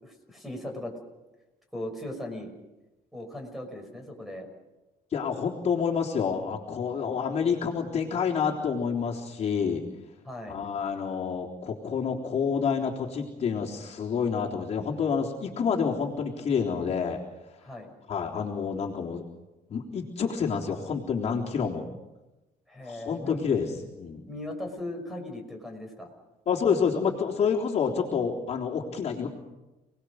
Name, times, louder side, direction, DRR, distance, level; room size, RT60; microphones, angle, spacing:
voice 1, 0.0-0.9 1.7-2.5 3.1-4.5 7.0-7.2 10.2-10.6 17.6-17.9 22.7-23.5 24.3-26.1, left 1 dB, ahead, 4 dB, 6.0 m, -38 dB
voice 2, 5.1-9.8 10.5-17.2 18.1-19.2 19.7-21.9 22.8-23.7 24.0-24.2 26.5-29.3, left 6 dB, 45° left, -2 dB, 3.8 m, -28 dB
30.0 x 20.0 x 6.5 m, 1.0 s
cardioid pair, 130°, 16 cm